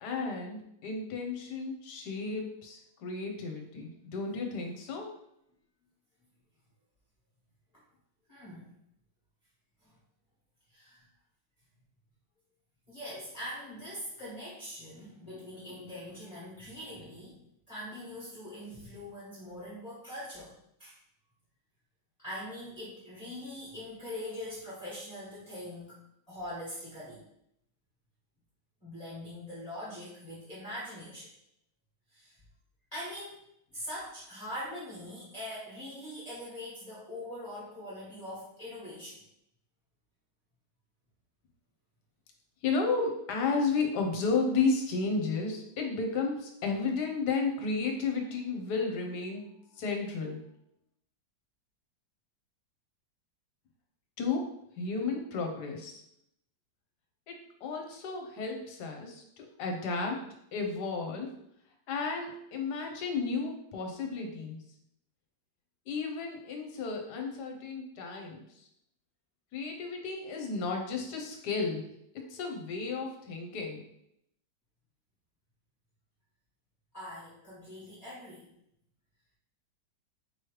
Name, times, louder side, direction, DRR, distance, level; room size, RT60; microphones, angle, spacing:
voice 1, 0.0-5.1 42.6-50.4 54.2-56.0 57.3-60.2 60.5-61.3 61.9-64.6 65.9-68.7 69.5-71.9 72.3-73.8, left 4 dB, 70° left, 2 dB, 1.3 m, -33 dB
voice 2, 8.3-8.7 9.8-9.9 10.7-11.1 12.9-17.4 17.7-20.5 20.8-21.0 22.2-26.0 26.3-27.2 28.8-31.3 32.1-32.4 32.9-33.4 33.7-39.2 76.9-78.5, left 1 dB, 25° left, -9 dB, 1.4 m, -42 dB
4.9 x 3.1 x 3.1 m, 0.76 s
omnidirectional pair, 1.9 m